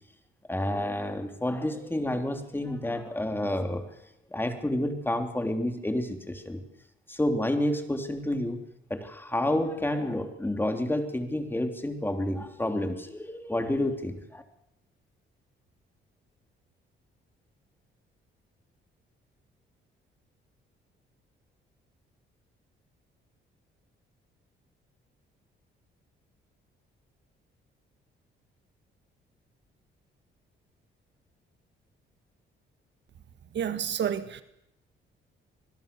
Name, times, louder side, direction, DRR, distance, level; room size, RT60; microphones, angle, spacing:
voice 1, 0.5-3.9 4.3-6.6 7.1-8.6 8.9-14.4, left 1 dB, 10° left, 6 dB, 3.2 m, -29 dB
voice 2, 33.5-34.4, right 8 dB, 65° right, 11 dB, 1.7 m, -29 dB
25.5 x 20.0 x 7.0 m, 0.81 s
cardioid pair, 90°, 20 cm